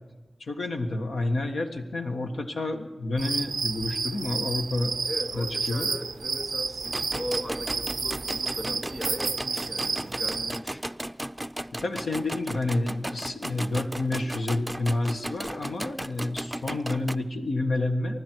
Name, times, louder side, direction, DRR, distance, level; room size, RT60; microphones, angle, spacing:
voice 1, 0.4-4.9 5.3-5.9 11.8-18.2, left 2 dB, 85° left, 4 dB, 1.5 m, -29 dB
sound 1, 3.2-10.6, right 4 dB, 80° right, 0.4 m, -31 dB
voice 2, 5.0-10.8, equal, 15° left, 6 dB, 2.3 m, -38 dB
sound 2, 6.8-17.2, right 1 dB, 15° right, 0.5 m, -36 dB
24.0 x 11.5 x 4.6 m, 1.3 s
cardioid pair, 45°, 0 cm